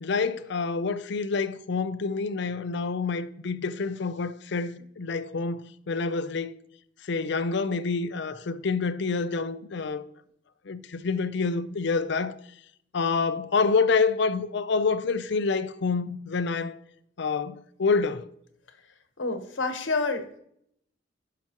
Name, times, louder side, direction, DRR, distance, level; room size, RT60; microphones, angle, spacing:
voice 1, 0.0-6.6 7.0-10.0 10.7-12.4 12.9-16.8 17.2-18.3, left 4 dB, 65° left, 0.6 m, -27 dB
voice 2, 19.2-20.4, left 3 dB, 90° left, 1.2 m, -28 dB
12.0 x 5.8 x 3.0 m
head